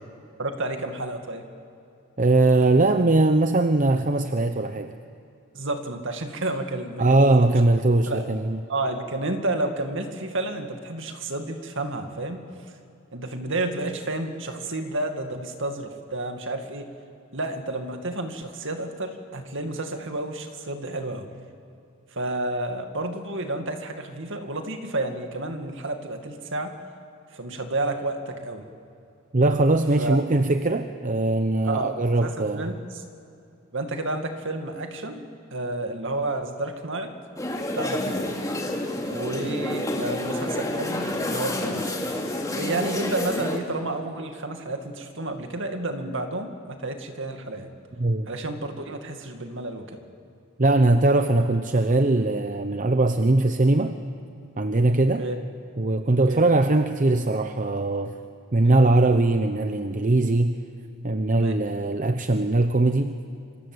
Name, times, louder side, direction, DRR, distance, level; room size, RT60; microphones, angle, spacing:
voice 1, 0.4-1.4 5.5-7.6 8.1-8.3 8.7-12.4 13.1-16.9 17.3-21.3 22.1-26.7 27.3-28.7 30.0-30.2 31.6-33.0 33.7-37.1 37.7-38.2 39.0-41.9 42.5-47.7 48.3-50.0 55.2-55.4 56.3-56.4 58.6-58.8 61.3-61.6, right 2 dB, 60° right, 5 dB, 2.3 m, -31 dB
voice 2, 2.2-4.9 7.0-8.6 29.3-32.7 48.0-48.3 50.6-54.0 54.6-55.3 55.8-58.2 58.5-60.6 61.0-63.2, right 2 dB, 35° right, 8 dB, 0.8 m, -21 dB
sound 1, 37.4-43.6, left 1 dB, 15° left, 2.7 m, -29 dB
27.0 x 25.5 x 8.1 m, 2.6 s
head